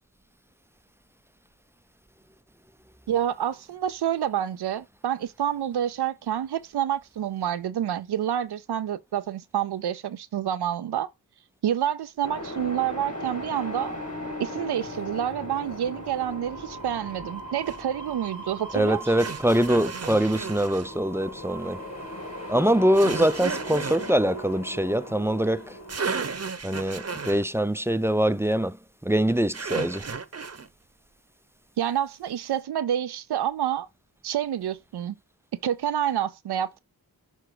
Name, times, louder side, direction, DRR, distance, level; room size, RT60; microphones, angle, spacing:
voice 1, 3.1-11.1 11.6-13.9 14.4-19.1 31.8-33.9 34.2-35.1 35.6-36.8, right 10 dB, 90° right, 0.6 m, -28 dB
sound 1, 12.2-26.1, equal, 40° left, 2.2 m, -38 dB
sound 2, 17.7-17.8 19.2-20.9 22.9-24.1 25.6-25.7 25.9-27.4 29.5-30.7, right 5 dB, 40° right, 0.9 m, -33 dB
voice 2, 18.7-21.8 22.5-25.7 26.6-28.8 29.0-30.1, equal, 5° right, 0.5 m, -23 dB
6.5 x 3.4 x 4.8 m
cardioid pair, 40°, 38 cm